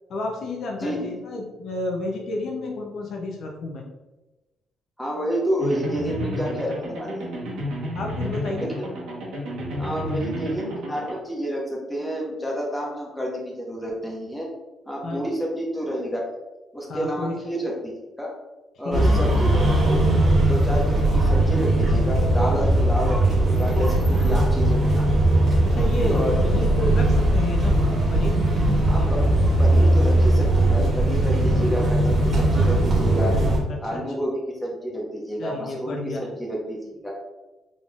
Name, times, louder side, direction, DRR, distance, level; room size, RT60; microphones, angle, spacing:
voice 1, 0.1-3.8 7.9-8.7 15.0-15.2 16.9-17.3 18.8-19.1 24.3-24.4 25.6-27.8 28.1-28.4 33.7-34.0 35.4-36.2, left 2 dB, 65° left, 1 dB, 0.6 m, -30 dB
voice 2, 0.8-1.1 5.0-7.2 8.6-8.9 9.8-14.5 14.9-16.2 16.7-17.9 18.2-18.3 18.8-20.1 20.5-25.1 26.1-26.4 28.9-29.3 29.6-33.4 33.8-37.2, equal, 5° left, -3 dB, 1.2 m, -29 dB
sound 1, 5.6-11.1, equal, 80° right, 1.1 m, -31 dB
sound 2, 18.9-33.6, right 1 dB, 50° right, 1.4 m, -19 dB
3.7 x 3.5 x 2.4 m, 1.1 s
cardioid pair, 90°, 0 cm